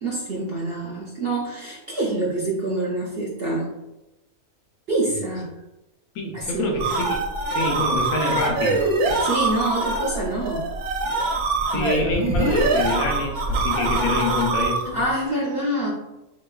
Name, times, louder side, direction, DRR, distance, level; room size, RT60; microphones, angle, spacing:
voice 1, 0.0-3.7 4.9-5.5 6.3-6.6 9.2-10.6 11.7-12.0 14.9-15.9, right 2 dB, 60° right, -5 dB, 0.7 m, -26 dB
voice 2, 6.1-7.2 7.5-8.9 11.7-15.0, left 2 dB, 75° left, 1 dB, 1.1 m, -26 dB
sound 1, 6.5-15.0, right 2 dB, 75° right, 1.0 m, -24 dB
3.6 x 2.8 x 2.3 m, 0.96 s
omnidirectional pair, 1.6 m